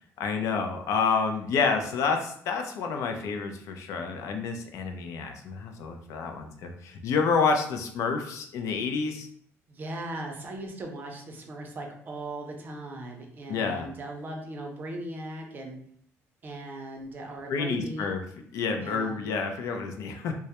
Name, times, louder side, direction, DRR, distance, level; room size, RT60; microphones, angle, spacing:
voice 1, 0.2-9.3 13.5-13.9 17.5-18.2 18.5-20.4, left 5 dB, 70° left, 5 dB, 0.4 m, -29 dB
voice 2, 9.7-15.8 16.4-18.1 18.8-19.2, right 1 dB, 35° right, 2 dB, 0.5 m, -38 dB
2.2 x 2.0 x 2.8 m, 0.63 s
cardioid pair, 145°, 6 cm